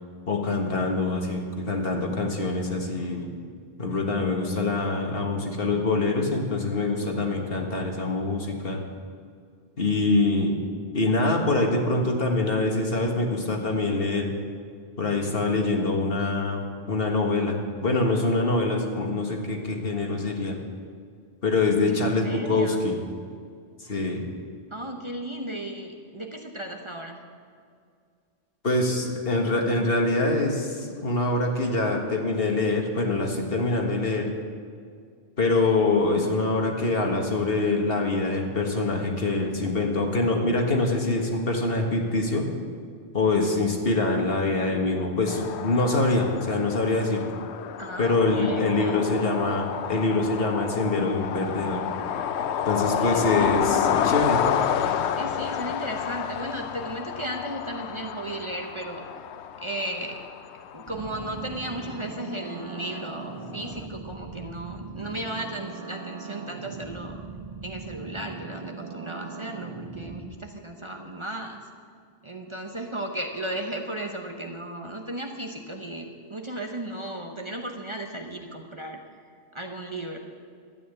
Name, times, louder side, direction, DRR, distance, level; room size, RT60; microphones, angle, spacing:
voice 1, 0.3-3.3 3.8-8.8 9.8-10.6 10.9-14.3 15.0-20.6 21.4-23.0 23.8-24.2 28.6-34.3 35.4-42.5 43.1-47.3 48.0-51.8 52.7-54.4, left 2 dB, 60° left, 1 dB, 1.8 m, -24 dB
voice 2, 21.9-22.8 24.7-27.2 47.8-49.1 52.7-53.5 55.1-59.1 59.6-60.2 60.7-67.2 67.6-71.6 72.2-79.0 79.5-80.2, right 1 dB, 30° right, 2 dB, 0.9 m, -35 dB
sound 1, 45.3-63.8, left 8 dB, 80° left, 0.9 m, -30 dB
sound 2, 60.9-70.2, right 4 dB, 65° right, 1.7 m, -39 dB
12.5 x 9.2 x 8.0 m, 2.2 s
omnidirectional pair, 1.1 m